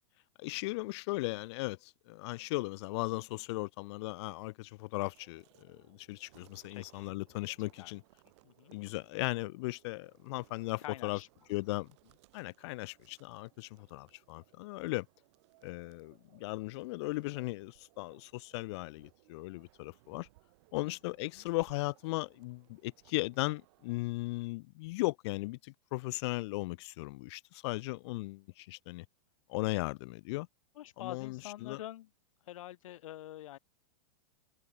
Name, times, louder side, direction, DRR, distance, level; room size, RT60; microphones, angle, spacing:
voice 1, 0.4-8.0 8.7-11.2 11.5-11.9 12.3-15.1 15.6-20.3 20.7-29.0 29.5-30.5 31.0-31.8, left 22 dB, 55° left, 0.8 m, -37 dB
sound 1, 5.1-24.0, right 21 dB, 55° right, 4.2 m, -66 dB
voice 2, 6.7-7.2 7.8-8.0 8.4-8.8 10.8-11.3 20.8-20.9 21.2-21.4 30.7-32.1 32.4-33.6, left 14 dB, 70° left, 1.1 m, -46 dB
hypercardioid pair, 130°, 17 cm